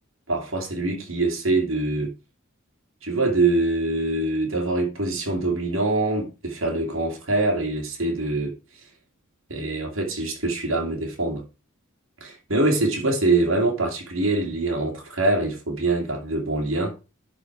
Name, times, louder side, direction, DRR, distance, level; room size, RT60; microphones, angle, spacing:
voice 1, 0.3-2.1 3.0-8.5 9.5-11.4 12.2-16.9, right 2 dB, 70° right, 2.4 m, -24 dB
10.5 x 4.5 x 4.5 m
head